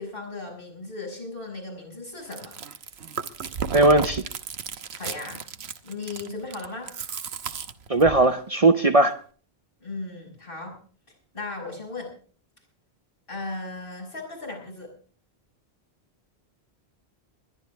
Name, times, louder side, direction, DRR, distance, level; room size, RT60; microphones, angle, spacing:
voice 1, 0.0-2.6 4.9-5.4 5.8-6.9 9.8-10.8 11.3-12.1 13.3-14.9, left 3 dB, 60° left, 0 dB, 6.2 m, -36 dB
Chewing mastication, 2.2-8.3, right 6 dB, 80° right, 1.2 m, -35 dB
voice 2, 3.7-4.2 7.9-9.2, right 2 dB, 40° right, 9 dB, 0.8 m, -18 dB
21.5 x 12.0 x 3.5 m, 0.43 s
omnidirectional pair, 1.1 m